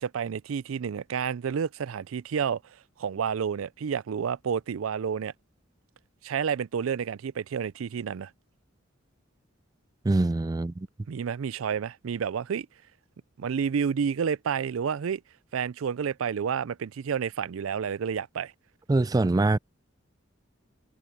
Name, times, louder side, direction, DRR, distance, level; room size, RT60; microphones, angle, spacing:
voice 1, 0.0-2.6 3.0-5.3 6.2-8.3 11.1-12.7 13.4-15.2 15.5-18.5, right 7 dB, 85° right, 0.4 m, -30 dB
voice 2, 10.0-10.9 18.9-19.6, right 2 dB, 20° right, 0.3 m, -23 dB
head